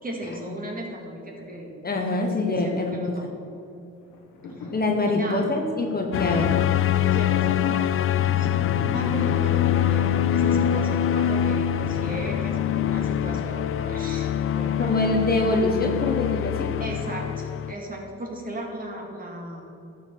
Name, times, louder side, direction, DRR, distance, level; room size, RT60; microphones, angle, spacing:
voice 1, 0.0-3.5 4.6-4.7 5.1-5.4 7.1-15.0 16.8-19.7, right 1 dB, 30° right, 0 dB, 2.3 m, -36 dB
voice 2, 1.8-3.2 4.7-6.5 14.8-16.7, left 2 dB, 30° left, 2 dB, 1.2 m, -24 dB
sound 1, 4.0-12.3 12.8-12.9, left 3 dB, 90° left, 1.5 m, -39 dB
sound 2, 6.1-17.7, left 10 dB, 45° left, 0.4 m, -24 dB
12.0 x 6.9 x 4.7 m, 2.7 s
cardioid pair, 90°, 30 cm